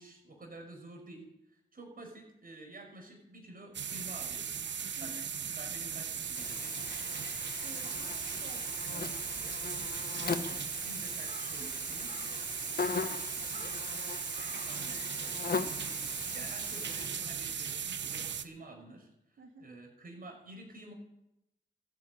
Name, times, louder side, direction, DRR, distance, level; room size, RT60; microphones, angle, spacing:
voice 1, 0.0-4.7 5.0-6.7 10.4-12.2 14.6-19.1 19.6-20.9, right 2 dB, 45° right, 2 dB, 5.8 m, -50 dB
sound 1, 3.7-18.4, right 7 dB, 65° right, 0.9 m, -38 dB
Buzz, 6.4-17.1, left 4 dB, 50° left, 1.1 m, -39 dB
voice 2, 7.6-9.5 12.2-13.9 19.4-19.6, right 3 dB, 80° right, 4 dB, 2.4 m, -53 dB
14.0 x 9.5 x 8.7 m, 0.88 s
cardioid pair, 65°, 20 cm